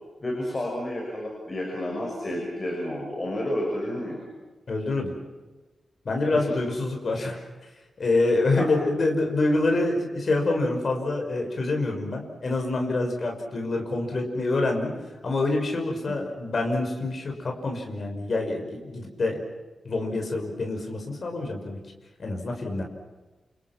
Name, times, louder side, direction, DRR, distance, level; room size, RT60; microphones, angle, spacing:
voice 1, 0.2-4.3 6.3-6.5 8.6-8.7 16.1-16.2, left 1 dB, 20° left, -1 dB, 6.3 m, -31 dB
voice 2, 4.7-5.1 6.0-7.4 8.0-14.9 15.2-19.4 19.8-21.8 22.2-22.8, left 2 dB, 40° left, 2 dB, 5.8 m, -26 dB
29.5 x 29.0 x 6.1 m, 1.2 s
wide cardioid pair, 180°, 0 cm